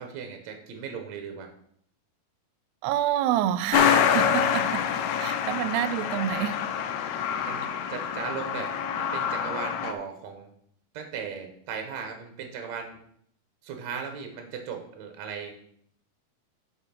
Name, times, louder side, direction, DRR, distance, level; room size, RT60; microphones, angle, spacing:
voice 1, 0.0-1.5 7.4-10.5 10.9-13.0 13.6-15.5, right 6 dB, 70° right, 5 dB, 1.7 m, -37 dB
voice 2, 2.8-4.8 5.2-6.6, right 12 dB, 85° right, 14 dB, 2.6 m, -27 dB
Truck, 3.7-9.9, left 8 dB, 80° left, 2.6 m, -26 dB
8.1 x 6.0 x 5.7 m, 0.67 s
omnidirectional pair, 4.7 m